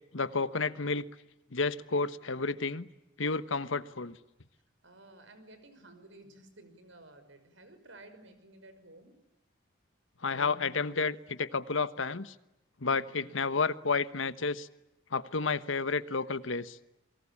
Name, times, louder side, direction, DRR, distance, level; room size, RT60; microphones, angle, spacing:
voice 1, 0.1-1.0 1.5-2.9 3.2-4.2 10.2-12.3 12.8-14.7 15.1-16.8, left 4 dB, 75° left, 14 dB, 1.2 m, -31 dB
voice 2, 4.8-9.1, right 2 dB, 70° right, 10 dB, 5.8 m, -54 dB
28.5 x 23.5 x 8.6 m, 0.90 s
head